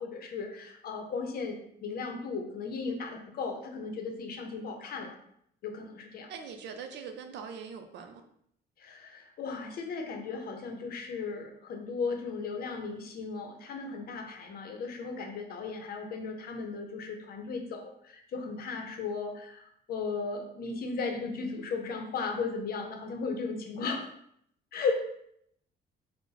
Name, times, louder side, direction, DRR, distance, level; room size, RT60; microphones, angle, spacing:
voice 1, 0.0-5.2 5.6-6.3 8.8-24.1 24.7-25.1, left 4 dB, 55° left, 4 dB, 0.7 m, -36 dB
voice 2, 6.3-8.2, right 6 dB, 65° right, 6 dB, 0.5 m, -42 dB
3.9 x 2.1 x 3.9 m, 0.71 s
cardioid pair, 155°, 19 cm